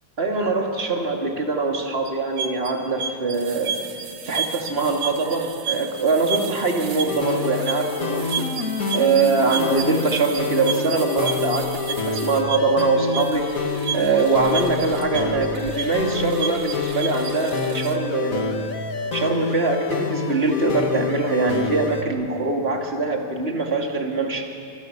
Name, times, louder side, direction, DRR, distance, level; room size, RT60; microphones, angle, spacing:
voice 1, 0.2-3.8 4.2-8.5 8.9-13.4 13.9-18.6 19.1-24.5, right 3 dB, 20° right, 2 dB, 2.3 m, -23 dB
sound 1, 2.1-18.0, right 7 dB, 60° right, 2.3 m, -32 dB
sound 2, 7.1-22.0, left 4 dB, 35° left, 1.5 m, -27 dB
29.0 x 27.0 x 6.8 m, 2.4 s
omnidirectional pair, 3.3 m